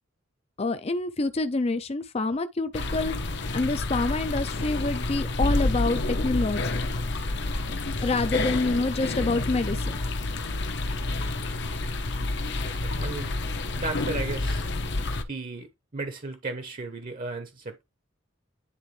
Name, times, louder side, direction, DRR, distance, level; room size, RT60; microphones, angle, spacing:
voice 1, 0.6-6.8 8.0-10.0, left 3 dB, 30° left, 0.5 m, -27 dB
sound 1, 2.7-15.2, left 2 dB, 60° left, 0.9 m, -29 dB
voice 2, 12.6-13.3 13.8-14.6 15.3-15.7 15.9-17.8, right 3 dB, 40° right, 0.9 m, -35 dB
9.9 x 3.7 x 3.2 m
head